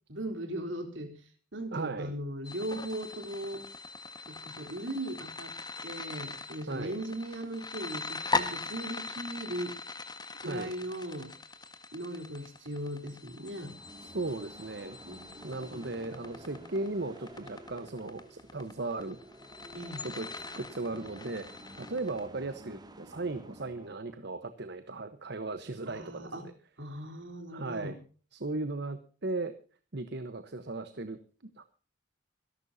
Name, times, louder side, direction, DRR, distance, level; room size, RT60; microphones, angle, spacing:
voice 1, 0.1-1.2 1.5-3.7 4.3-5.5 5.8-9.8 10.4-11.3 11.9-13.8 15.1-15.8 19.7-20.0 25.9-26.5 26.8-28.0, right 1 dB, 75° right, 4 dB, 3.8 m, -38 dB
voice 2, 1.7-2.1 6.7-6.9 10.4-10.7 14.0-15.0 15.4-19.2 20.0-21.5 21.8-26.5 27.5-28.0 28.3-29.5 29.9-31.7, right 2 dB, 60° right, 10 dB, 1.1 m, -37 dB
sound 1, 2.4-22.2, left 4 dB, 20° left, 1.5 m, -40 dB
sound 2, 13.0-24.1, right 1 dB, 20° right, 1.5 m, -51 dB
26.5 x 11.5 x 2.8 m, 0.39 s
head